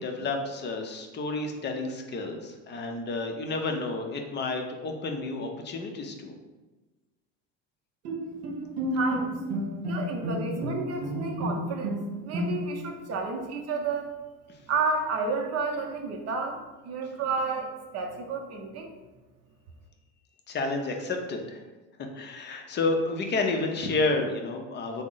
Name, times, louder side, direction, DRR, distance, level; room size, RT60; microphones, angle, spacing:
voice 1, 0.0-6.3 20.5-21.6 22.1-25.0, left 3 dB, 30° left, 3 dB, 0.5 m, -30 dB
Bowed string instrument, 8.0-12.9, equal, 85° right, 0.7 m, -31 dB
voice 2, 8.9-9.3 9.8-14.1 14.7-16.6 16.8-18.9, right 4 dB, 45° right, 2 dB, 0.6 m, -31 dB
3.6 x 2.1 x 3.8 m, 1.2 s
supercardioid pair, 110°, 37 cm